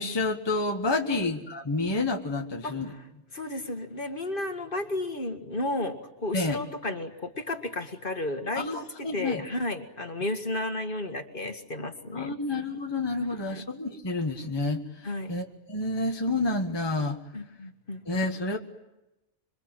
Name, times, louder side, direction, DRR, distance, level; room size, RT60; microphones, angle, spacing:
voice 1, 0.0-2.9 6.3-6.6 8.5-9.4 12.1-17.2 18.1-18.6, left 2 dB, 20° left, 3 dB, 1.3 m, -29 dB
voice 2, 2.6-3.0 3.3-12.3 13.3-13.6 15.0-15.3 17.3-18.3, left 2 dB, 40° left, 6 dB, 2.0 m, -33 dB
26.5 x 24.0 x 9.0 m, 0.98 s
omnidirectional pair, 1.4 m